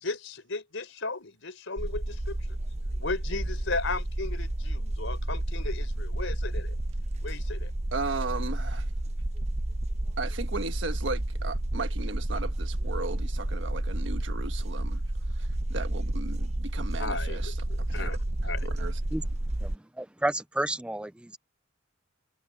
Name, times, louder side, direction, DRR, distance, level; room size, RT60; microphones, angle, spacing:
voice 1, 0.0-2.6 3.0-6.7 7.2-7.7 17.0-18.2 18.4-18.7, left 3 dB, 70° left, 4.3 m, -35 dB
sound 1, 1.8-19.8, right 1 dB, 35° right, 0.9 m, -31 dB
voice 2, 7.9-8.9 10.2-15.0 15.4-17.5 17.9-18.2 18.6-19.0, right 3 dB, 65° right, 1.5 m, -36 dB
voice 3, 20.0-21.4, right 1 dB, 5° right, 0.3 m, -31 dB
head